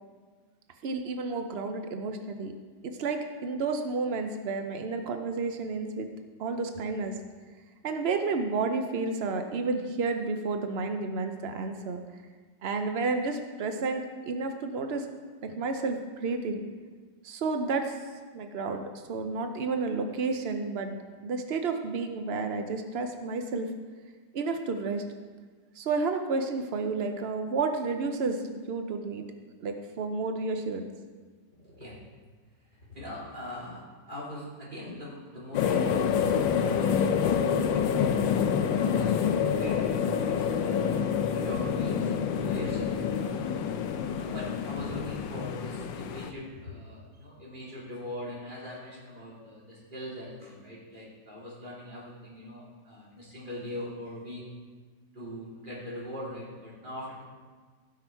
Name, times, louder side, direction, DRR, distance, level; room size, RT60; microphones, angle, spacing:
voice 1, 0.8-2.5 2.8-6.1 6.4-7.2 7.8-12.0 12.6-15.1 15.4-16.6 17.2-18.0 18.3-21.0 21.2-23.7 24.3-25.0 25.8-29.3 29.6-30.9, right 4 dB, 90° right, 6 dB, 0.5 m, -31 dB
voice 2, 31.6-31.9 32.9-38.5 38.8-43.6 44.1-54.4 55.1-57.2, left 1 dB, 25° right, -6 dB, 3.2 m, -41 dB
sound 1, 35.5-46.3, left 7 dB, 80° left, 1.4 m, -27 dB
16.0 x 6.1 x 4.5 m, 1.5 s
omnidirectional pair, 2.0 m